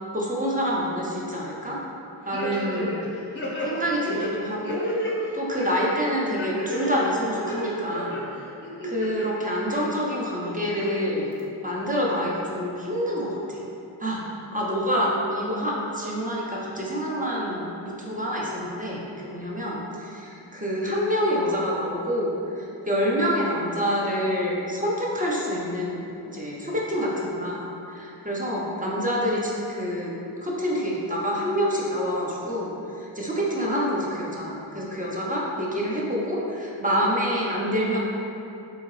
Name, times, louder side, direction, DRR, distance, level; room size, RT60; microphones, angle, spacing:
voice 1, 0.1-1.8 2.3-3.0 3.6-4.9 5.3-8.3 8.8-11.3 11.6-13.6 14.0-14.2 14.5-30.1 30.4-38.0, equal, 20° right, -4 dB, 0.5 m, -27 dB
sound 1, 2.3-3.1 3.4-5.1 5.5-5.9 6.4-7.0 7.3-8.2 8.6-9.3 9.7-9.8 10.4-11.0 11.4-11.5, left 1 dB, 25° left, 0.7 m, -31 dB
3.6 x 2.7 x 3.0 m, 2.8 s
wide cardioid pair, 95°, 48 cm